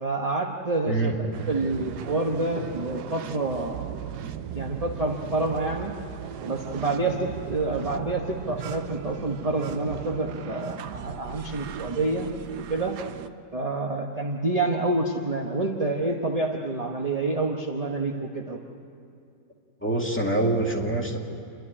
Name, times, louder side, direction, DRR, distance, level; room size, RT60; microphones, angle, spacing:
voice 1, 0.0-3.9 4.5-5.9 6.4-12.3 12.7-12.9 13.5-18.6, right 2 dB, 25° right, 1 dB, 1.1 m, -28 dB
sound 1, 1.3-13.3, right 9 dB, 80° right, 1.3 m, -37 dB
voice 2, 19.8-21.2, right 2 dB, 5° left, -2 dB, 2.0 m, -25 dB
28.5 x 11.5 x 9.9 m, 2.4 s
omnidirectional pair, 1.8 m